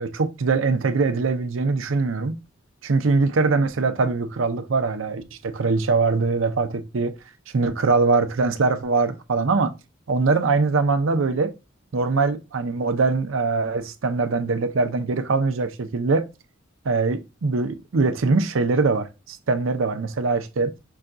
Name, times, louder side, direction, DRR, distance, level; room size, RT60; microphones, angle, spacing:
voice 1, 0.0-2.4 2.8-7.1 7.5-9.7 10.1-11.5 11.9-16.3 16.8-20.7, right 4 dB, 75° right, 0.6 m, -22 dB
5.7 x 2.3 x 3.7 m
head